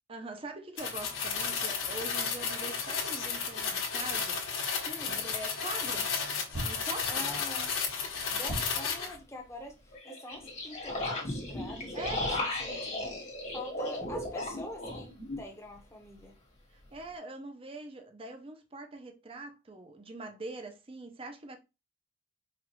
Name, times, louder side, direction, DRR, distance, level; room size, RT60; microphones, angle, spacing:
voice 1, 0.1-4.4 5.2-6.1 6.6-7.2 11.9-12.3 16.7-21.6, right 2 dB, 30° right, 0.6 m, -43 dB
sound 1, 0.8-9.2, left 6 dB, 80° left, 1.2 m, -33 dB
voice 2, 4.8-5.2 7.1-7.7 8.1-16.3, left 2 dB, 15° left, 0.9 m, -45 dB
sound 2, 6.5-7.3 8.5-9.2, right 1 dB, 65° right, 1.6 m, -39 dB
sound 3, 7.0-7.1 9.9-15.4, left 1 dB, 35° left, 1.3 m, -35 dB
4.9 x 2.4 x 3.0 m
head